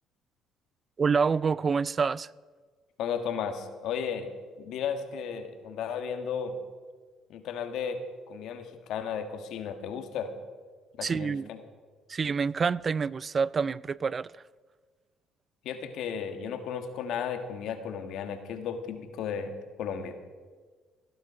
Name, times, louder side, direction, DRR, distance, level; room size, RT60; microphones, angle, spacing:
voice 1, 1.0-2.3 11.0-11.5 12.1-14.3, right 5 dB, 40° right, 0.3 m, -27 dB
voice 2, 3.0-4.3 4.6-6.5 7.3-8.0 8.3-10.3 11.0-11.6 15.6-20.2, left 7 dB, 70° left, 1.7 m, -34 dB
17.0 x 11.0 x 5.5 m
supercardioid pair, 75°, 0 cm